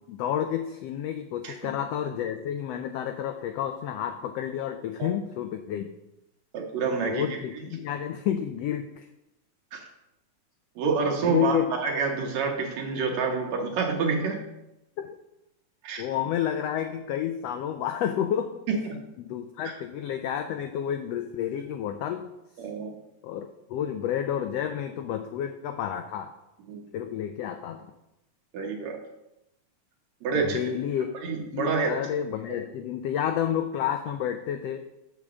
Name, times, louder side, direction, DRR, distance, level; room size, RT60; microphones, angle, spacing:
voice 1, 0.0-5.9 7.1-9.1 11.2-11.7 15.0-15.2 16.0-18.6 19.2-22.3 23.2-26.3 26.9-27.9 30.3-31.1 31.5-34.8, left 10 dB, 85° left, 7 dB, 1.4 m, -30 dB
voice 2, 6.5-7.6 9.7-9.8 10.8-14.4 15.8-16.0 18.8-19.0 19.7-19.8 22.6-23.0 26.7-26.8 28.5-29.0 30.2-30.6 31.2-31.9, right 4 dB, 70° right, 1 dB, 2.4 m, -28 dB
7.3 x 5.0 x 6.9 m, 0.89 s
omnidirectional pair, 3.5 m